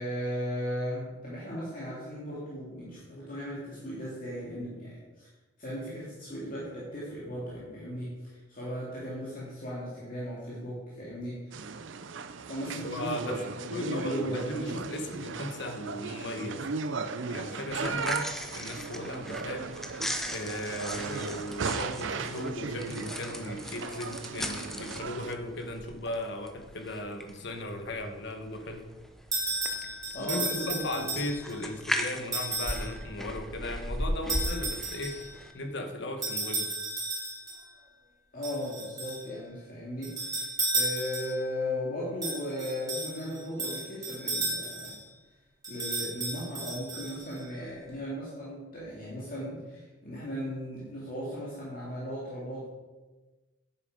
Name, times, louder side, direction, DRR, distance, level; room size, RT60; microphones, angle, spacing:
voice 1, 0.0-5.3 5.6-11.7 12.5-14.5 30.1-31.2 38.3-44.9 45.7-52.7, equal, 40° left, -7 dB, 2.5 m, -37 dB
sound 1, 11.5-25.3, right 4 dB, 60° right, 0.5 m, -37 dB
voice 2, 12.8-13.4 13.7-16.7 17.3-19.7 20.3-28.8 30.2-35.2 35.5-36.7, left 1 dB, 55° left, 7 dB, 1.2 m, -37 dB
sound 2, 17.7-35.5, equal, ahead, 0.7 m, -38 dB
sound 3, 29.3-31.6 32.3-32.9 34.3-35.3 36.2-37.6 38.4-39.3 40.0-41.5 42.2-45.0 45.6-47.4, right 2 dB, 20° right, 3.3 m, -33 dB
10.0 x 7.9 x 5.0 m, 1.2 s
head